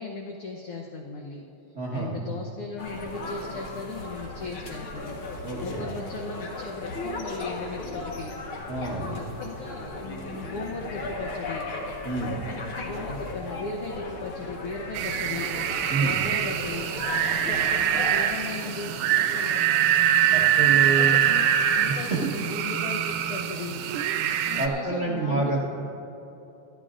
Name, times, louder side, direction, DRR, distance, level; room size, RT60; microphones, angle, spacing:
voice 1, 0.0-1.4 1.9-11.7 12.7-15.5 16.0-16.9 17.7-19.7 20.7-23.8 24.5-25.6, left 4 dB, 70° left, 0 dB, 1.4 m, -37 dB
voice 2, 1.7-2.2 5.4-5.8 8.7-9.2 12.0-12.4 15.9-16.3 20.3-21.2 21.9-22.2 24.6-25.6, right 3 dB, 70° right, -6 dB, 0.6 m, -28 dB
sound 1, 2.8-18.2, left 2 dB, 55° left, 1.8 m, -36 dB
sound 2, 14.9-24.7, right 10 dB, 90° right, 2.2 m, -24 dB
25.5 x 11.5 x 2.5 m, 3.0 s
omnidirectional pair, 3.5 m